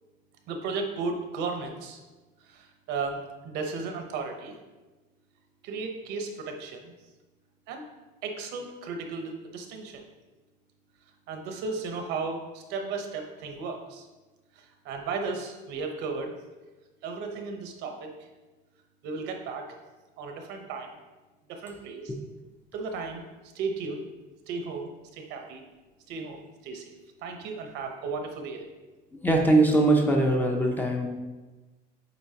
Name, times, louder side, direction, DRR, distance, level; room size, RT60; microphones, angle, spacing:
voice 1, 0.5-2.0 2.5-4.6 5.6-6.9 7.7-7.8 8.2-10.0 11.3-14.1 14.6-16.3 17.0-18.3 19.0-19.8 20.2-21.0 21.5-22.1 22.7-23.2 23.5-24.1 24.5-25.6 26.1-26.9 27.2-28.7, right 4 dB, 65° right, 4 dB, 0.9 m, -35 dB
voice 2, 29.1-31.1, right 2 dB, 10° left, 1 dB, 0.6 m, -22 dB
8.2 x 4.2 x 2.8 m, 1.2 s
cardioid pair, 150°, 19 cm